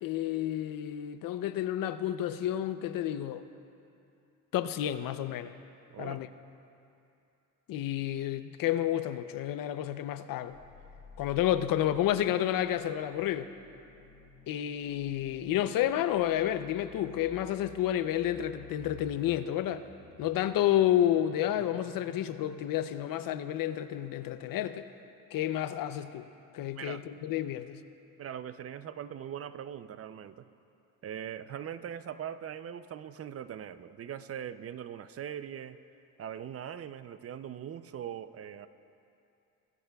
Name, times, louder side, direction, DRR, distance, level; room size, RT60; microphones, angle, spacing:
voice 1, 0.0-3.5 4.5-5.5 6.0-6.3 7.7-10.6 11.2-13.5 14.5-19.8 20.2-24.9 25.3-26.3 26.5-27.8, left 12 dB, 70° left, 12 dB, 0.7 m, -30 dB
voice 2, 5.9-6.2 26.8-27.0 28.2-30.4 31.0-35.8 36.2-38.7, right 9 dB, 40° right, 13 dB, 0.5 m, -41 dB
sound 1, 10.5-24.3, left 5 dB, 90° left, 2.1 m, -55 dB
22.5 x 16.0 x 2.3 m, 2.7 s
cardioid pair, 100°, 35 cm